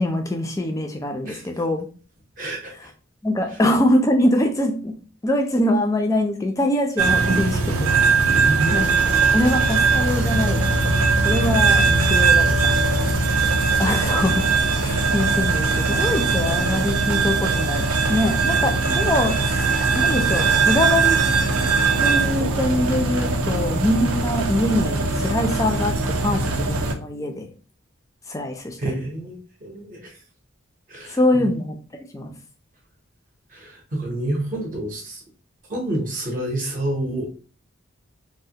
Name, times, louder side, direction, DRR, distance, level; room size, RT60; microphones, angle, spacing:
voice 1, 0.0-1.9 3.2-5.0 5.2-7.9 8.7-8.9 9.3-12.8 13.8-14.5 14.8-21.2 22.0-27.5 28.3-28.9 31.1-31.8 32.1-32.3, left 1 dB, 15° left, 4 dB, 0.3 m, -23 dB
voice 2, 2.4-2.9 8.3-9.4 28.8-30.2 30.9-31.5 33.5-35.2 35.7-37.3, right 1 dB, 40° right, 0 dB, 0.6 m, -29 dB
sound 1, 7.0-26.9, right 4 dB, 85° right, 0.5 m, -20 dB
3.1 x 2.1 x 2.7 m, 0.37 s
head